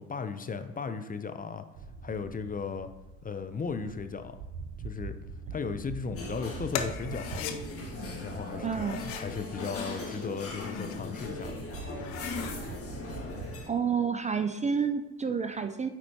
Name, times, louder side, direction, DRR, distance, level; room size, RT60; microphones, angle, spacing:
voice 1, 0.0-1.7 2.0-2.9 3.2-4.4 4.8-5.2 5.5-7.5 8.2-11.6, left 5 dB, 25° left, 9 dB, 0.6 m, -36 dB
sound 1, 1.7-13.7, right 4 dB, 80° right, 0.7 m, -44 dB
sound 2, 6.1-13.7, left 3 dB, 40° left, 1.8 m, -39 dB
sound 3, 6.7-7.6 8.7-9.3 10.2-11.0 11.4-11.5 11.9-12.6, left 9 dB, 75° left, 0.7 m, -38 dB
voice 2, 8.6-9.0 13.7-15.9, right 6 dB, 20° right, 8 dB, 0.4 m, -29 dB
9.0 x 4.3 x 2.8 m, 1.1 s
hypercardioid pair, 55°, 34 cm